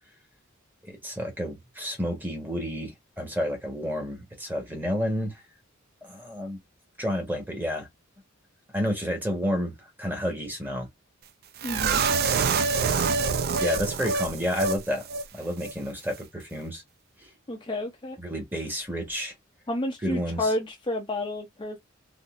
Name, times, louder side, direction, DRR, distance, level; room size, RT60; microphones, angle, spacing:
voice 1, 0.8-5.4 6.0-6.6 7.0-7.9 8.7-10.9 12.8-13.1 13.6-15.0 15.3-16.8 17.2-17.3 18.2-19.3 20.0-20.5, equal, 10° right, 1.1 m, -30 dB
voice 2, 11.6-12.0 17.5-18.2 19.7-21.8, left 1 dB, 25° left, 0.5 m, -30 dB
sound 1, 11.6-14.8 15.1-15.2 15.6-15.7, right 5 dB, 50° right, 0.4 m, -25 dB
3.8 x 2.6 x 2.4 m
head